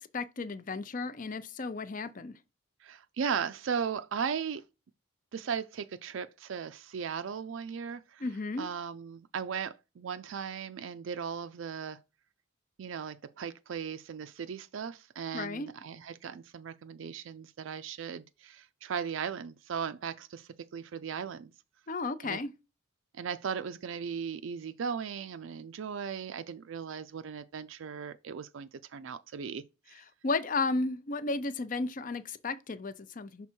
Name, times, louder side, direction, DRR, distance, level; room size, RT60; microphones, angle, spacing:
voice 1, 0.0-2.4 8.2-8.7 15.3-15.7 21.9-22.5 30.2-33.5, left 3 dB, 40° left, 0.5 m, -33 dB
voice 2, 2.8-4.6 5.3-8.2 8.6-12.0 12.8-21.5 22.2-22.4 23.1-29.9, right 6 dB, 70° right, 0.4 m, -37 dB
6.1 x 3.5 x 4.4 m
head